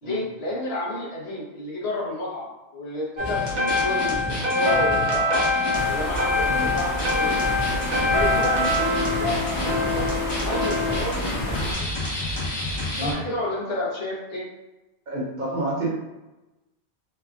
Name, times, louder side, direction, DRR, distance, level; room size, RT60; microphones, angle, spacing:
voice 1, 0.0-5.4 5.8-7.5 7.9-8.6 9.2-10.2 10.4-11.9 13.0-14.4, left 1 dB, 65° left, -6 dB, 1.1 m, -31 dB
sound 1, 3.2-5.8 6.2-6.3 6.6-13.1, left 1 dB, 25° left, 0.7 m, -30 dB
sound 2, 3.2-11.0, left 2 dB, 85° right, 1.1 m, -25 dB
sound 3, 5.7-11.7, left 1 dB, 85° left, 1.2 m, -30 dB
voice 2, 15.1-15.9, right 1 dB, 50° right, -6 dB, 0.8 m, -29 dB
3.3 x 2.2 x 2.4 m, 1.0 s
omnidirectional pair, 1.1 m